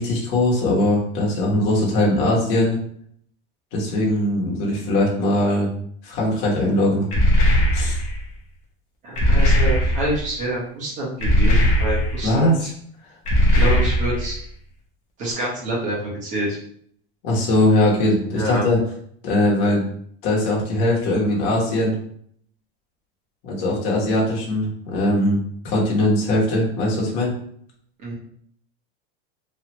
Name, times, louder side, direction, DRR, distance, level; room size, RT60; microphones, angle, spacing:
voice 1, 0.0-2.8 3.7-5.7 6.0-7.1 7.7-8.0 12.2-12.6 17.2-18.8 19.2-19.8 20.2-22.0 23.4-27.3, left 1 dB, 45° left, -3 dB, 1.1 m, -20 dB
sound 1, 7.1-8.2 9.2-10.2 11.2-12.3 13.3-14.3, equal, 25° left, 0.7 m, -18 dB
voice 2, 9.0-12.7 13.5-14.3 15.2-16.6 18.3-18.6 28.0-28.1, right 1 dB, 25° right, -4 dB, 1.1 m, -27 dB
3.1 x 2.4 x 2.9 m, 0.64 s
supercardioid pair, 170°, 29 cm